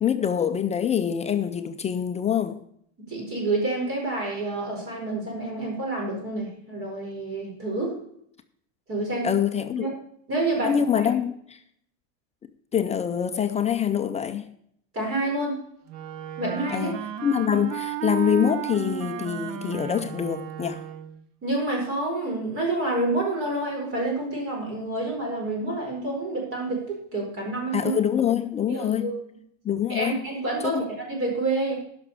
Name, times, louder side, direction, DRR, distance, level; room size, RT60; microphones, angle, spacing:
voice 1, 0.0-2.6 9.2-9.9 10.6-11.6 12.7-14.5 16.7-20.8 27.7-29.1 29.6-30.2 30.6-30.8, left 9 dB, 20° left, 0.4 m, -25 dB
voice 2, 3.0-8.0 8.9-9.3 9.8-9.9 10.3-11.1 14.9-15.6 16.4-16.9 21.4-27.9 28.7-29.1 29.9-31.8, right 2 dB, 35° right, 4.7 m, -28 dB
Wind instrument woodwind instrument, 15.9-21.2, right 9 dB, 65° right, 1.0 m, -33 dB
11.5 x 6.0 x 6.8 m
cardioid pair, 155°, 37 cm